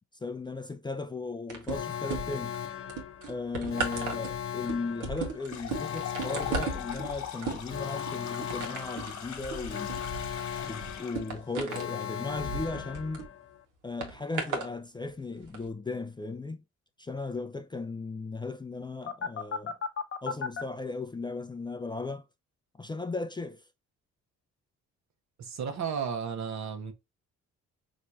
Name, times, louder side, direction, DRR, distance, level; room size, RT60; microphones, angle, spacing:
voice 1, 0.2-2.6 3.3-10.0 10.6-13.3 13.8-16.6 17.0-19.8 20.2-22.2 22.8-23.6, left 3 dB, 15° left, 0.4 m, -36 dB
sound 1, 1.5-2.5 2.9-13.3 14.0-14.7 15.4-15.6, right 4 dB, 85° right, 1.6 m, -36 dB
Alarm, 1.7-13.6 19.1-20.6, left 8 dB, 45° left, 0.9 m, -37 dB
sound 2, 5.4-11.3, left 8 dB, 65° left, 1.2 m, -42 dB
voice 2, 25.4-26.9, right 6 dB, 65° right, 1.3 m, -33 dB
4.8 x 3.1 x 2.7 m
cardioid pair, 90°, 30 cm